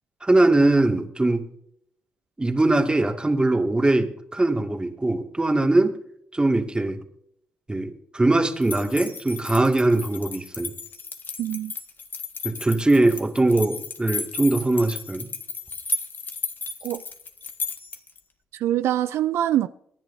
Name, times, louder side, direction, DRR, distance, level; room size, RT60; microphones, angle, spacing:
voice 1, 0.2-1.4 2.4-6.0 6.3-7.0 7.7-10.7 12.4-15.3, right 2 dB, 20° right, 2.1 m, -21 dB
sound 1, 8.6-18.2, left 4 dB, 45° left, 1.7 m, -34 dB
voice 2, 11.4-11.7 16.8-17.0 18.5-19.7, right 12 dB, 75° right, 0.4 m, -24 dB
24.5 x 10.5 x 2.7 m
hypercardioid pair, 45°, 5 cm